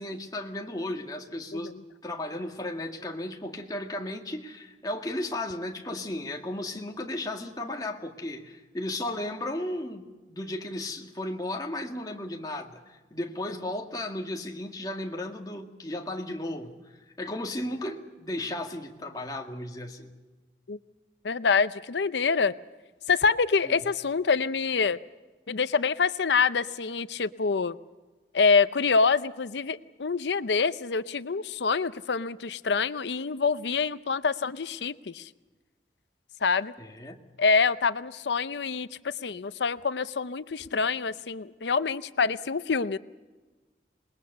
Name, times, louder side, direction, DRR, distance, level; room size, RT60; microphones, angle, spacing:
voice 1, 0.0-1.7 2.0-16.8 17.2-20.1 23.6-23.8 36.8-37.2, left 1 dB, 20° left, 2 dB, 2.0 m, -35 dB
voice 2, 21.2-22.5 23.1-25.0 25.5-27.8 28.3-35.3 36.4-36.7 37.4-43.0, left 5 dB, 75° left, 14 dB, 0.6 m, -26 dB
27.0 x 20.5 x 6.8 m, 1.2 s
head